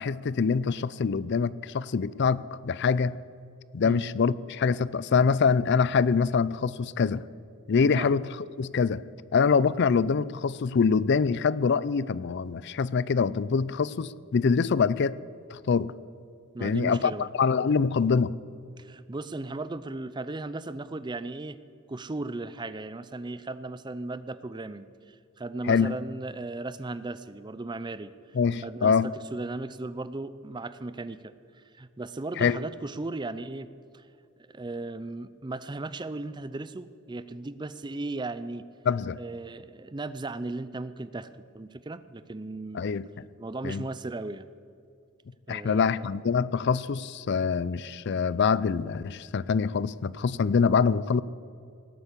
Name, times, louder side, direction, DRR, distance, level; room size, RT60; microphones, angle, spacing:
voice 1, 0.0-3.2 3.7-7.2 7.7-8.2 8.6-9.0 9.3-15.2 15.5-15.9 16.6-18.4 25.7-25.9 28.3-29.1 32.4-32.6 38.9-39.2 42.7-43.1 43.6-43.9 45.5-51.2, left 5 dB, 55° left, 19 dB, 0.4 m, -25 dB
voice 2, 16.5-17.3 18.8-21.6 21.9-28.1 28.6-31.3 31.7-33.7 33.9-34.0 34.5-38.6 39.2-42.9 43.4-44.5 45.5-46.1, right 2 dB, 20° right, 14 dB, 0.5 m, -36 dB
18.0 x 8.1 x 8.2 m, 2.4 s
head